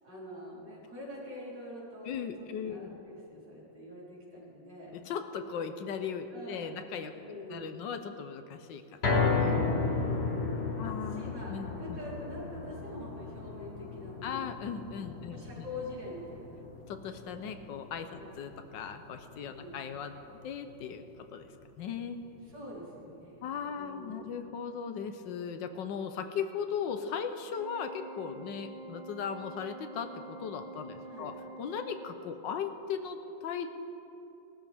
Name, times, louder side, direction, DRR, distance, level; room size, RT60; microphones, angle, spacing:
voice 1, 0.0-2.2 2.6-4.9 6.3-6.7 7.1-7.7 10.1-10.9 11.2-14.5 15.3-16.6 18.2-18.3 19.5-19.8 22.5-24.4 31.1-31.3, left 1 dB, 65° right, -7 dB, 4.6 m, -45 dB
voice 2, 2.0-2.9 4.9-7.1 7.5-9.7 10.8-12.0 14.2-15.6 16.9-21.0 21.3-21.5 21.8-22.2 23.4-31.3 31.6-33.7, left 7 dB, 80° left, 8 dB, 1.5 m, -38 dB
sound 1, 9.0-21.3 21.7-21.8 22.2-22.3, left 4 dB, 40° left, 1.3 m, -34 dB
Organ, 27.6-32.6, right 2 dB, 80° right, 1.8 m, -47 dB
20.0 x 13.0 x 3.6 m, 2.9 s
omnidirectional pair, 2.0 m